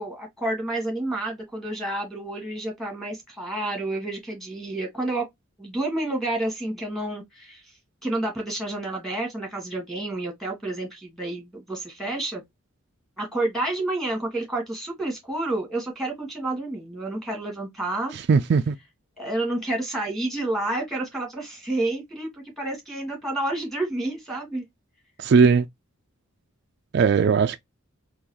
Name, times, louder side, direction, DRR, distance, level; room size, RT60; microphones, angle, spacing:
voice 1, 0.0-5.3 5.6-7.6 8.0-12.4 13.2-18.1 19.2-24.6, right 2 dB, ahead, 1.6 m, -29 dB
voice 2, 18.1-18.7 25.2-25.6 26.9-27.6, right 5 dB, 50° right, 0.3 m, -18 dB
3.9 x 2.9 x 2.8 m
head